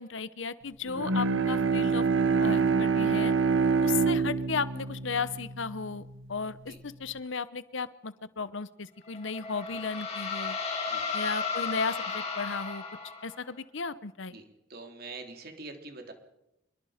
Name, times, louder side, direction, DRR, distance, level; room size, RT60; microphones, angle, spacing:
voice 1, 0.0-2.1 2.4-3.3 3.8-6.0 6.3-10.6 11.1-12.8 13.2-14.4, left 5 dB, 65° left, 16 dB, 0.9 m, -35 dB
Bowed string instrument, 0.9-6.3, right 5 dB, 75° right, 1.2 m, -26 dB
sound 1, 9.1-13.4, left 5 dB, 30° left, 5.0 m, -34 dB
voice 2, 14.3-16.1, right 3 dB, 50° right, 5 dB, 3.3 m, -44 dB
26.5 x 21.5 x 5.1 m, 0.87 s
head